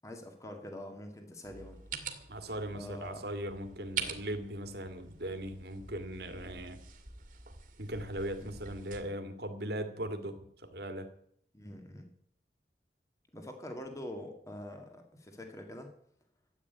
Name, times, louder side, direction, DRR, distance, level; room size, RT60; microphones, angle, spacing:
voice 1, 0.0-1.8 2.7-3.2 8.4-8.5 11.5-12.1 13.3-15.9, left 1 dB, 20° left, 4 dB, 1.8 m, -45 dB
sound 1, 1.4-9.0, right 6 dB, 50° right, 2.0 m, -45 dB
voice 2, 2.3-6.8 7.8-11.1, right 1 dB, 65° right, 6 dB, 2.1 m, -39 dB
13.5 x 8.8 x 9.2 m, 0.69 s
head